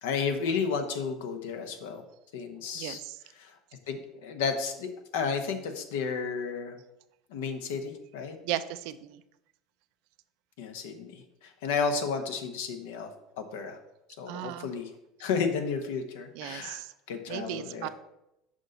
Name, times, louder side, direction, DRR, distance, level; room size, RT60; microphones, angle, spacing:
voice 1, 0.0-2.0 2.3-3.0 3.4-3.5 3.9-6.8 7.3-8.4 10.6-13.1 13.4-13.8 14.2-14.9 15.2-16.8 17.1-17.9, left 5 dB, 80° left, 7 dB, 0.9 m, -32 dB
voice 2, 2.7-3.2 8.4-9.2 14.3-14.7 16.3-16.9 17.3-17.9, right 13 dB, 70° right, 13 dB, 0.4 m, -36 dB
6.3 x 5.3 x 3.9 m, 0.87 s
hypercardioid pair, 90°, 0 cm